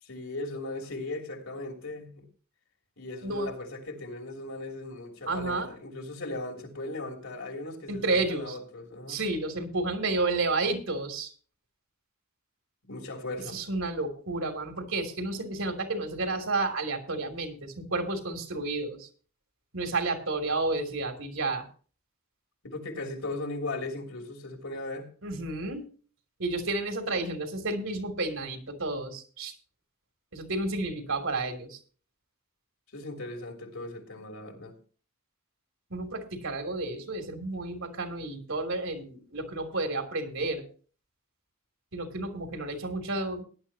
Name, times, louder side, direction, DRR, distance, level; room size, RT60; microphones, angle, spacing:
voice 1, 0.0-2.3 3.0-9.2 12.9-13.6 22.6-25.1 32.9-34.8, left 2 dB, 70° left, 3.1 m, -38 dB
voice 2, 5.3-5.7 7.9-8.6 9.1-11.3 13.5-19.1 19.7-21.6 25.2-25.9 26.4-29.5 30.3-31.8 35.9-40.6 41.9-43.4, right 2 dB, 65° right, 2.9 m, -31 dB
17.5 x 11.0 x 2.9 m
head